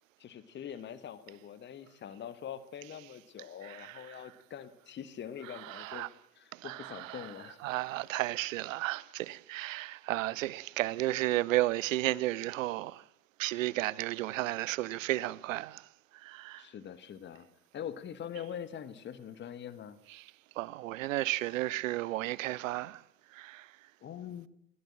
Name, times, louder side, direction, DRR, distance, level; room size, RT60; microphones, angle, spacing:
voice 1, 0.2-6.1 6.4-7.6 16.6-17.5 17.7-20.0 24.0-24.5, left 9 dB, 20° left, 1.4 m, -43 dB
voice 2, 3.6-4.2 5.6-6.1 6.5-7.3 7.6-13.0 13.4-15.9 16.1-16.7 20.1-20.2 20.6-23.0 23.3-23.7, right 17 dB, 50° right, 0.8 m, -33 dB
21.5 x 15.5 x 8.8 m
figure-of-eight pair, 80°, 49 cm